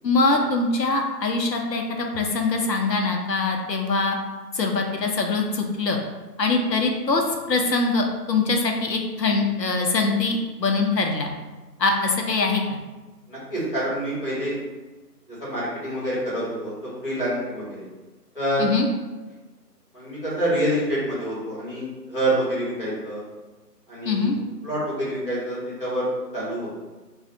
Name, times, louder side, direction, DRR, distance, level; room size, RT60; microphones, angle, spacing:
voice 1, 0.0-4.2 4.5-6.0 6.4-11.3 11.8-12.8 18.6-18.8 24.1-24.4, left 3 dB, 80° left, 2 dB, 0.8 m, -23 dB
voice 2, 13.3-14.6 15.3-17.8 18.3-18.6 19.9-23.2 23.9-24.4 24.6-26.7, right 1 dB, 35° left, -9 dB, 1.4 m, -27 dB
2.6 x 2.4 x 4.1 m, 1.2 s
figure-of-eight pair, 170°, 49 cm